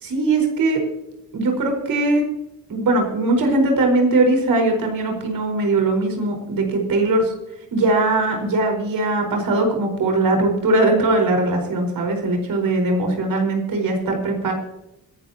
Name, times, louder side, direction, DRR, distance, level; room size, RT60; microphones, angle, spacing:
voice 1, 0.0-0.8 1.3-2.2 2.7-7.3 7.7-14.5, right 2 dB, 80° right, 2 dB, 4.9 m, -20 dB
25.5 x 11.5 x 2.9 m, 0.88 s
wide cardioid pair, 175°, 34 cm